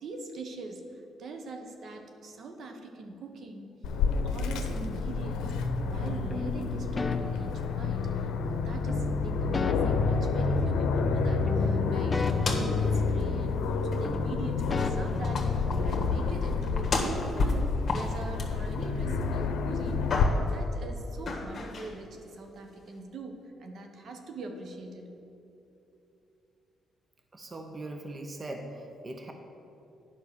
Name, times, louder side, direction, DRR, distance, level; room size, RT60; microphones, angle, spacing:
voice 1, 0.0-3.7 4.2-20.2 20.5-25.1, right 2 dB, 60° right, 4 dB, 1.0 m, -42 dB
Aircraft, 3.8-20.2, left 4 dB, 85° left, 0.7 m, -29 dB
sound 1, 6.3-8.3 8.9-11.2 11.5-13.8 14.0-16.1, left 3 dB, 25° left, 0.5 m, -37 dB
sound 2, 12.2-12.9 13.2-13.3 13.9-14.3 14.6-19.2 19.6-20.6 21.3-21.9, left 3 dB, 40° left, 1.5 m, -33 dB
voice 2, 27.3-29.3, right 2 dB, 30° right, 4 dB, 0.8 m, -40 dB
9.3 x 5.6 x 6.8 m, 2.8 s
cardioid pair, 90°, 0 cm